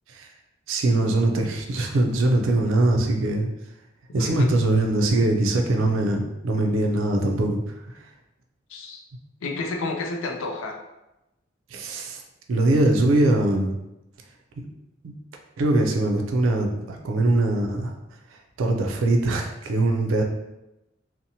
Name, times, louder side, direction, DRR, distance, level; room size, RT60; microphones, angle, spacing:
voice 1, 0.7-3.5 4.1-7.6 11.7-12.2 12.5-13.7 15.0-15.1 15.6-17.9 18.6-20.2, right 2 dB, 80° right, 2 dB, 0.4 m, -22 dB
voice 2, 4.2-4.5 8.7-9.0 9.4-10.8, left 3 dB, 85° left, 2 dB, 0.4 m, -31 dB
2.7 x 2.0 x 2.7 m, 0.93 s
head